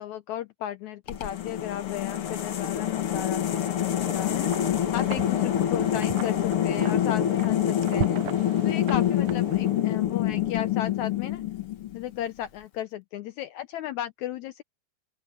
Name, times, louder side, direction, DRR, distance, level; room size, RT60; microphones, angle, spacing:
voice 1, 0.0-8.3 8.6-11.4 11.9-14.6, left 11 dB, 75° left, 1.8 m, -35 dB
sound 1, 1.1-12.2, left 11 dB, 50° left, 1.8 m, -26 dB
Wind, 3.5-10.0, right 13 dB, 70° right, 1.7 m, -39 dB
open air
omnidirectional pair, 3.9 m